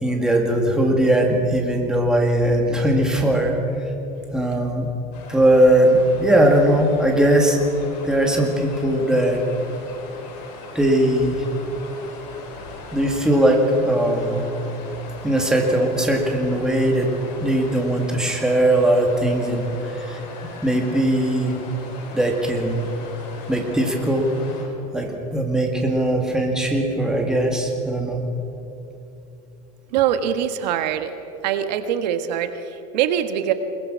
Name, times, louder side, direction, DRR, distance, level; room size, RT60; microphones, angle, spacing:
voice 1, 0.0-3.6 4.3-4.9 5.3-7.6 8.0-9.4 10.7-11.4 12.9-14.4 15.2-17.1 17.4-20.2 20.6-21.6 22.1-22.9 23.5-24.3 24.9-28.2, right 1 dB, 5° right, 1 dB, 2.1 m, -19 dB
sound 1, 5.1-24.6, left 3 dB, 85° left, 5.8 m, -39 dB
voice 2, 29.9-31.1 31.4-33.5, right 10 dB, 90° right, 9 dB, 1.5 m, -23 dB
22.0 x 20.5 x 6.3 m, 3.0 s
supercardioid pair, 165°, 21 cm